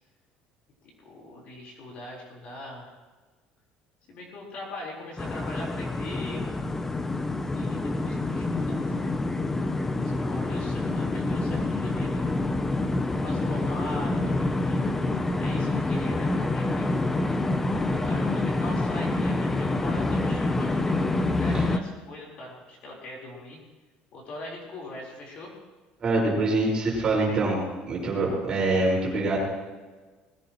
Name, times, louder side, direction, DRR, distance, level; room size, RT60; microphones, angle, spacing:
voice 1, 1.0-2.9 4.1-6.6 7.5-9.1 10.0-12.3 13.2-14.9 15.4-17.0 17.9-23.6 24.1-25.5 28.6-28.8, left 1 dB, 40° left, -2 dB, 4.1 m, -41 dB
sound 1, 5.2-21.8, left 2 dB, 10° left, 0.6 m, -27 dB
voice 2, 26.0-27.6 27.9-29.4, right 2 dB, 25° right, -3 dB, 5.0 m, -24 dB
20.5 x 17.0 x 3.1 m, 1.3 s
cardioid pair, 180°, 3 cm